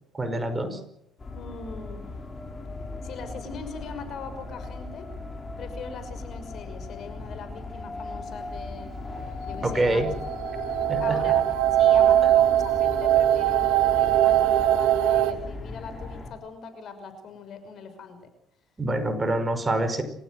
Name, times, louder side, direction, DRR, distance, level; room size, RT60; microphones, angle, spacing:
voice 1, 0.1-0.8 9.6-10.1 10.9-11.2 18.8-20.0, right 2 dB, 20° right, 8 dB, 5.4 m, -25 dB
sound 1, 1.2-16.3, left 3 dB, 25° left, 5.6 m, -37 dB
voice 2, 1.3-2.1 3.0-5.1 5.6-8.9 9.4-10.0 11.0-18.3, left 4 dB, 60° left, 9 dB, 6.0 m, -40 dB
sound 2, 9.9-15.3, right 12 dB, 85° right, 2.3 m, -21 dB
29.5 x 16.0 x 7.9 m, 0.76 s
cardioid pair, 95°, 0 cm